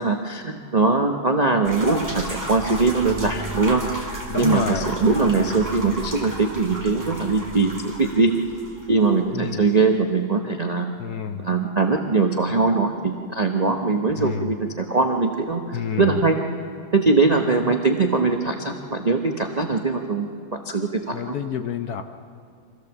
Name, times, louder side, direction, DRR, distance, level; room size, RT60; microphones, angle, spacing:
voice 1, 0.0-4.1 4.4-8.4 8.9-10.9 11.4-16.4 16.9-21.4, right 3 dB, 45° right, 4 dB, 0.5 m, -21 dB
sound 1, 1.6-9.2, right 1 dB, 10° right, 2.1 m, -33 dB
voice 2, 4.3-4.9 9.3-9.6 11.0-11.4 14.2-14.5 15.7-16.1 17.6-17.7 21.1-22.0, left 8 dB, 65° left, 8 dB, 1.0 m, -28 dB
25.0 x 15.5 x 7.2 m, 2.3 s
omnidirectional pair, 2.2 m